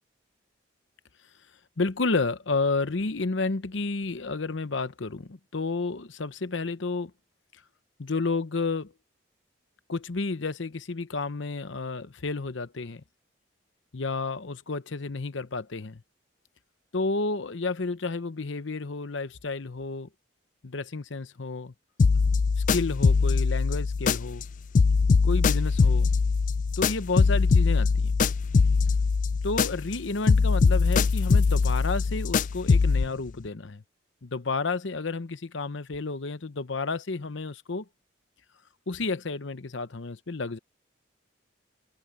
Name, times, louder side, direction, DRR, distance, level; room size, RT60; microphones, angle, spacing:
voice 1, 1.8-7.1 8.0-8.9 9.9-13.0 13.9-16.0 16.9-20.1 20.6-21.7 22.7-24.4 25.2-26.1 26.8-28.2 29.4-33.8 34.2-37.8 38.9-40.6, left 3 dB, 75° left, 0.9 m, -31 dB
sound 1, 22.0-24.5 24.7-30.0 30.3-33.1, left 4 dB, 40° left, 0.3 m, -22 dB
head